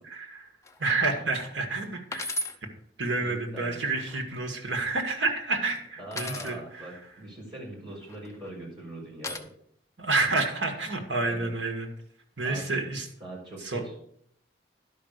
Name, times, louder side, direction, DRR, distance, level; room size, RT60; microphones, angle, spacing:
voice 1, 0.0-0.5 0.8-2.4 2.6-2.7 3.0-7.0 10.0-11.9 12.4-13.1 13.6-13.8, right 3 dB, 85° right, 4 dB, 1.9 m, -29 dB
sound 1, 0.6-0.9 1.4-1.5 2.1-2.6 3.7-4.4 6.1-6.5 8.0-8.5 9.2-9.4, left 1 dB, 15° left, 0.6 m, -35 dB
voice 2, 3.2-3.9 6.0-9.5 11.2-11.5 12.4-12.8 13.2-14.0, right 1 dB, 25° right, -6 dB, 4.7 m, -42 dB
11.5 x 5.3 x 6.7 m, 0.67 s
head